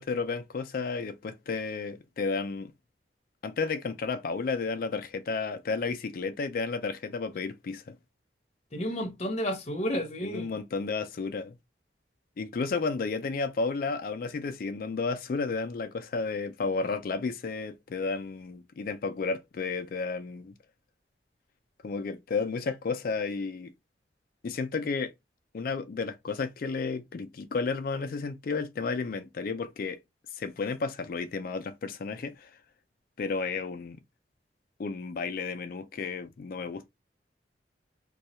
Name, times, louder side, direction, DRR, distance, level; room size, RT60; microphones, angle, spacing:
voice 1, 0.0-2.7 3.4-8.0 10.2-11.6 12.4-20.5 21.8-23.7 24.4-25.1 25.5-30.0 30.3-32.6 33.2-34.0 34.8-36.9, left 4 dB, 55° left, 0.4 m, -32 dB
voice 2, 8.7-10.6, equal, 35° left, 0.8 m, -31 dB
2.7 x 2.3 x 4.1 m
head